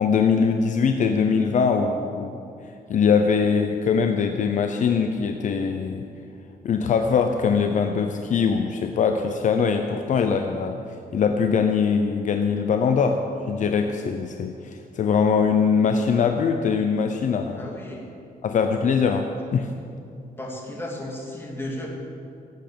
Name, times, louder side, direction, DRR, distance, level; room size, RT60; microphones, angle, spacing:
voice 1, 0.0-2.4 2.9-6.0 6.6-10.8 11.1-13.2 13.5-17.7 18.4-19.7, left 6 dB, 55° left, 5 dB, 0.7 m, -22 dB
voice 2, 17.6-18.1 20.4-21.9, left 1 dB, 15° left, -2 dB, 2.5 m, -34 dB
17.0 x 8.3 x 7.1 m, 2.6 s
wide cardioid pair, 155°, 16 cm